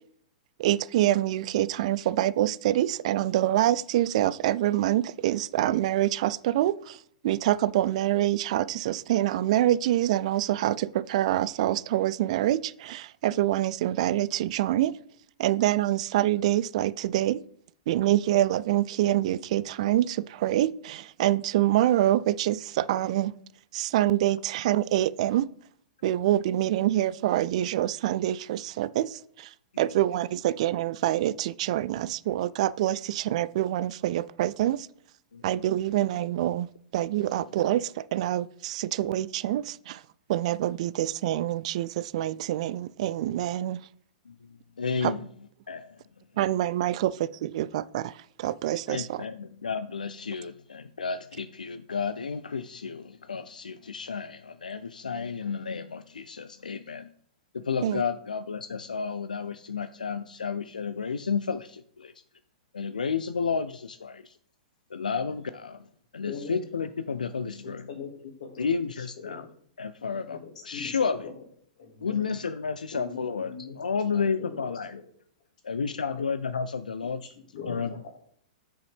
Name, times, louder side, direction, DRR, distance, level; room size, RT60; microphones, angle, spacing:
voice 1, 0.6-7.0 7.2-15.0 15.4-17.4 17.9-23.3 23.7-25.5 26.0-29.5 29.8-34.9 35.4-36.7 36.9-40.0 40.3-43.8 45.0-45.1 46.4-47.1 47.4-49.2 57.8-58.0, right 13 dB, 55° right, 0.3 m, -26 dB
voice 2, 44.8-45.3 45.7-46.0 48.9-57.1 57.5-62.1 62.7-64.4 64.9-65.8 66.1-67.8 68.6-69.4 69.8-70.4 70.6-71.3 72.0-75.0 75.6-77.2 77.7-78.1, left 5 dB, 85° left, 0.4 m, -31 dB
voice 3, 66.3-66.6 67.5-69.5 70.3-71.3 71.8-72.4 72.9-75.0 75.9-76.2 77.2-78.1, left 5 dB, 65° left, 2.2 m, -42 dB
7.9 x 6.4 x 3.5 m
hypercardioid pair, 110°, 4 cm